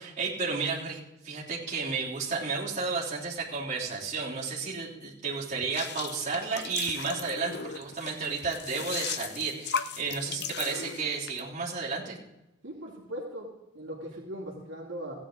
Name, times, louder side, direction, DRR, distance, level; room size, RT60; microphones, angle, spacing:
voice 1, 0.0-12.2, right 4 dB, 35° right, -6 dB, 3.3 m, -32 dB
sound 1, 5.6-11.4, left 6 dB, 55° left, 0.7 m, -36 dB
voice 2, 12.6-13.5 13.7-15.1, equal, 60° right, -3 dB, 2.7 m, -39 dB
16.0 x 9.8 x 3.8 m, 0.94 s
head